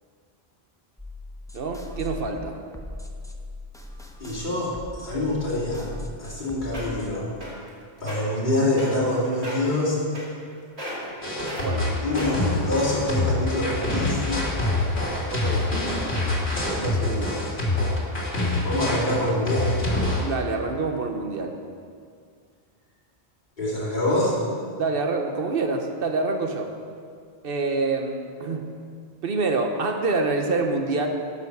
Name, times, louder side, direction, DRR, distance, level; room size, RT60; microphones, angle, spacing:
sound 1, 1.0-7.2, left 1 dB, 5° left, 0.5 m, -39 dB
voice 1, 1.5-2.6 11.6-12.0 15.3-15.7 16.7-17.4 20.2-21.6 24.8-26.7 27.4-28.7 29.2-31.1, right 3 dB, 60° right, 4 dB, 1.1 m, -26 dB
voice 2, 4.2-5.9 6.2-7.3 8.0-10.0 12.0-14.5 18.3-19.8 23.6-24.4, left 1 dB, 45° left, -7 dB, 2.6 m, -25 dB
sound 2, 6.4-6.5 6.7-7.0 7.4-7.7 8.0-8.2 8.8-9.1 9.4-9.7 10.1-10.5 10.8-11.1 11.5-11.6 12.2-12.5 13.2-13.3, left 1 dB, 80° right, 2.8 m, -34 dB
sound 3, 11.2-20.2, left 2 dB, 70° left, 2.0 m, -26 dB
10.5 x 5.6 x 6.5 m, 2.1 s
omnidirectional pair, 1.1 m